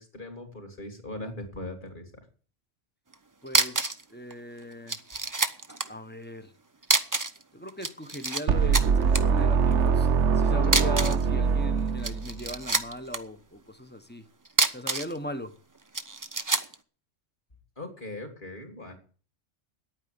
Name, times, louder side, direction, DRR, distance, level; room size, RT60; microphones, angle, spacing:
voice 1, 0.0-2.2 17.8-19.0, left 2 dB, 40° left, 3.1 m, -40 dB
sound 1, 3.1-3.2 3.5-4.0 4.3-4.4 4.9-5.9 6.8-7.4 7.7-8.4 8.7-9.2 10.6-11.2 11.9-13.2 14.4-15.2 15.9-16.7, right 3 dB, 20° right, 0.7 m, -26 dB
voice 2, 3.4-5.0 5.9-6.5 7.5-14.3 14.7-15.5, left 1 dB, 10° left, 0.9 m, -38 dB
sound 2, 8.5-12.5, right 6 dB, 70° right, 1.1 m, -23 dB
10.0 x 9.0 x 9.5 m
omnidirectional pair, 1.3 m